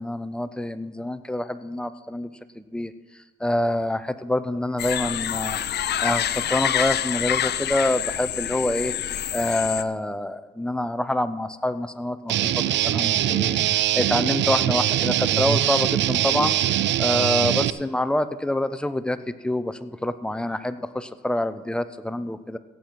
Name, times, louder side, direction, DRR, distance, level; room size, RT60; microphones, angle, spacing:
voice 1, 0.0-2.3 2.6-2.9 3.4-5.6 6.0-9.0 9.3-16.6 17.0-22.6, left 1 dB, 5° left, 11 dB, 0.6 m, -26 dB
sound 1, 4.8-9.8, left 10 dB, 55° left, 0.6 m, -27 dB
Guitar, 12.3-17.7, right 12 dB, 65° right, 0.5 m, -22 dB
17.0 x 7.4 x 4.7 m, 1.2 s
cardioid pair, 90°, 20 cm